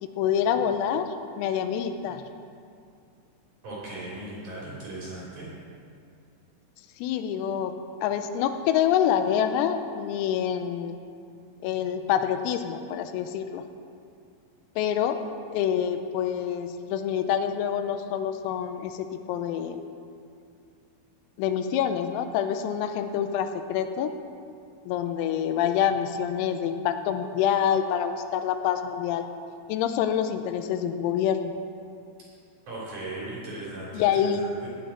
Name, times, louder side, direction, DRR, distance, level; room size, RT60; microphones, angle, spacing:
voice 1, 0.0-2.2 7.0-7.8 8.0-11.0 11.6-13.6 14.8-15.2 15.5-19.8 21.4-24.1 24.9-29.3 29.7-31.5 34.0-34.4, left 9 dB, 85° left, 8 dB, 3.4 m, -26 dB
voice 2, 3.6-5.5 32.7-34.7, right 2 dB, 40° right, -7 dB, 4.0 m, -37 dB
18.0 x 8.5 x 4.3 m, 2.3 s
omnidirectional pair, 6.0 m